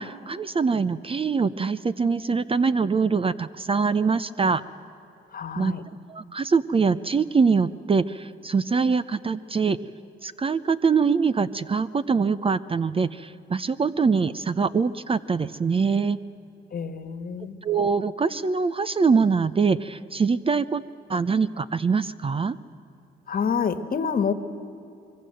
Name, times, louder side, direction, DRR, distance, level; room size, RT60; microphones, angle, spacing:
voice 1, 0.0-4.6 5.6-5.7 6.1-9.8 10.2-16.2 17.6-20.8 21.1-22.6, right 5 dB, 25° right, 15 dB, 0.6 m, -23 dB
voice 2, 5.3-5.8 16.7-17.6 23.3-24.3, left 6 dB, 45° left, 10 dB, 1.5 m, -27 dB
25.0 x 23.0 x 7.7 m, 2.9 s
cardioid pair, 90°, 20 cm